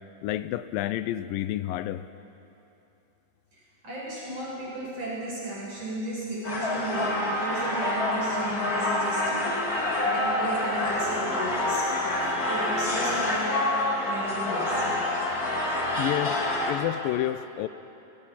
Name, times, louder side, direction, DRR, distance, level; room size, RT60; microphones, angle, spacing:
voice 1, 0.2-2.1 16.0-16.4 16.7-17.7, left 13 dB, 90° left, 13 dB, 2.4 m, -29 dB
voice 2, 3.5-9.7 10.0-12.1 12.4-13.6 14.0-14.9, right 1 dB, 45° right, -6 dB, 6.5 m, -35 dB
sound 1, 6.4-16.7, left 1 dB, 25° left, 2.8 m, -27 dB
29.5 x 20.0 x 5.8 m, 2.8 s
omnidirectional pair, 3.9 m